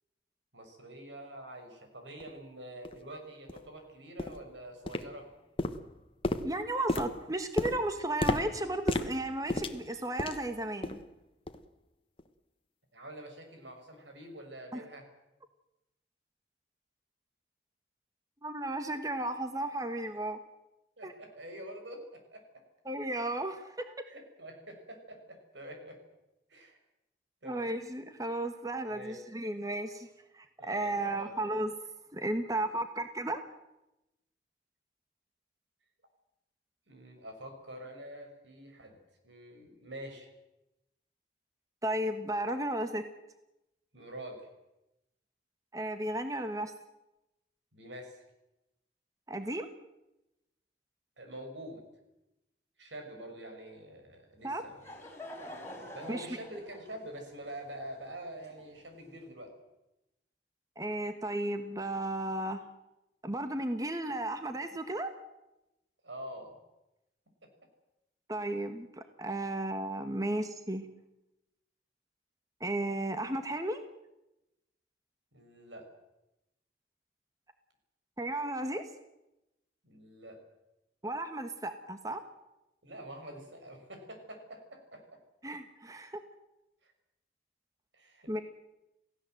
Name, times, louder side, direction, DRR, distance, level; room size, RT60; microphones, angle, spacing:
voice 1, 0.5-5.3 12.9-15.1 21.0-22.4 24.1-26.0 26.5-26.8 27.4-27.7 28.9-29.2 30.6-31.6 36.9-39.0 39.2-40.3 43.9-44.5 47.7-48.2 51.2-51.8 52.8-54.8 55.9-59.5 66.0-66.5 67.4-67.5 75.3-75.8 79.8-80.4 82.8-85.2 86.8-86.9 87.9-88.4, right 1 dB, 85° right, 4 dB, 6.0 m, -46 dB
sound 1, 2.2-2.3 2.8-3.0 3.5-3.7 4.2-4.5 4.9-5.3 5.6-10.5 10.8-11.1 11.5-11.6 12.2-12.3, left 1 dB, 30° left, 1.2 m, -34 dB
voice 2, 6.4-11.0 14.7-14.8 18.4-20.4 21.0-21.1 22.8-24.0 27.4-30.1 30.3-31.7 32.1-33.4 41.8-43.0 45.7-46.7 49.3-49.7 54.4-54.6 56.1-56.3 60.8-62.6 63.2-65.1 68.3-70.9 72.6-73.8 78.2-78.8 81.0-82.2 85.4-86.2 88.3-88.4, right 1 dB, 20° right, 8 dB, 1.3 m, -34 dB
Laughter / Crowd, 54.4-59.1, left 1 dB, 15° left, 4.8 m, -48 dB
28.5 x 16.5 x 7.8 m, 0.94 s
head